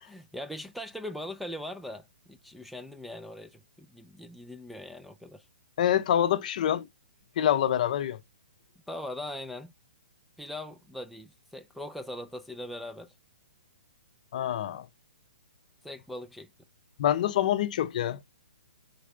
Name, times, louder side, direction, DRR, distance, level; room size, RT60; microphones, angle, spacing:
voice 1, 0.0-5.5 8.9-9.7 10.4-13.1 15.8-16.5, left 1 dB, ahead, 0.3 m, -40 dB
voice 2, 5.8-6.9 7.4-8.2 14.3-14.9 17.0-18.2, left 11 dB, 50° left, 0.6 m, -26 dB
4.1 x 3.2 x 3.6 m
hypercardioid pair, 140°, 5 cm